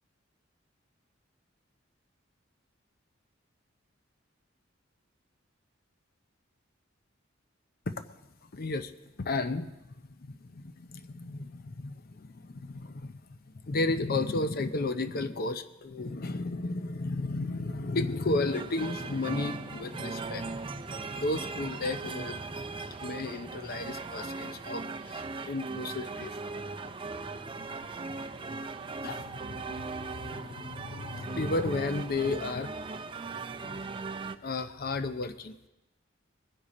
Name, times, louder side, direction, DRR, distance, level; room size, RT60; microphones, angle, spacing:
voice 1, 8.5-8.9 9.2-9.8 10.0-20.7 21.2-22.4 23.0-26.3 29.0-32.7 34.4-35.6, left 2 dB, 50° left, 11 dB, 0.6 m, -33 dB
sound 1, 18.5-34.4, right 4 dB, 25° right, 0.6 m, -38 dB
22.0 x 10.0 x 4.2 m, 1.0 s
head